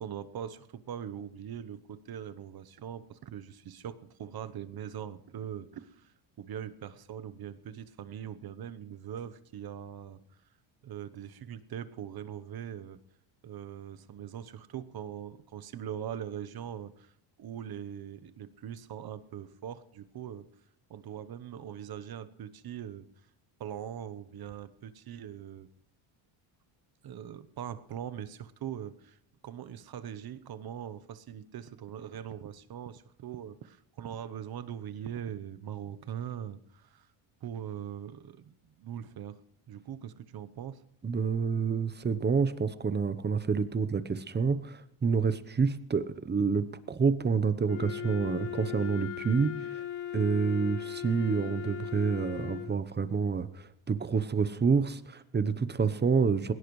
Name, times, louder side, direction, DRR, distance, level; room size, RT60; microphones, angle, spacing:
voice 1, 0.0-10.2 10.8-13.0 13.4-17.1 17.4-20.5 20.9-23.1 23.6-25.7 27.0-29.2 29.4-37.1 37.4-39.4 39.7-40.8, right 9 dB, 45° right, 13 dB, 0.9 m, -41 dB
voice 2, 41.0-49.8 50.1-56.5, right 5 dB, 20° right, 13 dB, 0.8 m, -28 dB
Wind instrument woodwind instrument, 47.6-52.8, left 11 dB, 90° left, 1.7 m, -38 dB
20.0 x 17.0 x 3.2 m, 0.77 s
cardioid pair, 120°, 50 cm